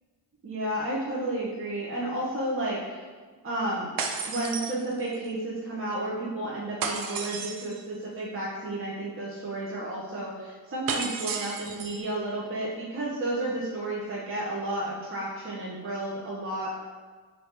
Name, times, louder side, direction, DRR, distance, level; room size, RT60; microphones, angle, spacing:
voice 1, 0.4-3.0 3.4-3.9 4.2-16.7, right 1 dB, 30° right, -6 dB, 0.8 m, -32 dB
sound 1, 4.0-5.3 6.8-7.8 10.9-12.1, right 5 dB, 50° right, 0.5 m, -33 dB
2.7 x 2.7 x 3.6 m, 1.4 s
cardioid pair, 75°, 44 cm